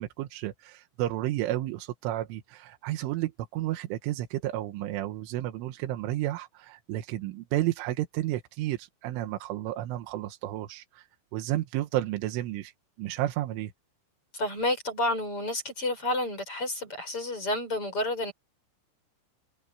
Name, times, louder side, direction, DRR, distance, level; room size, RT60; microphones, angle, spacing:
voice 1, 0.0-11.1 11.3-12.7 13.0-13.7, right 15 dB, 90° right, 3.7 m, -32 dB
voice 2, 14.3-18.3, left 1 dB, 30° left, 7.8 m, -30 dB
omnidirectional pair, 5.4 m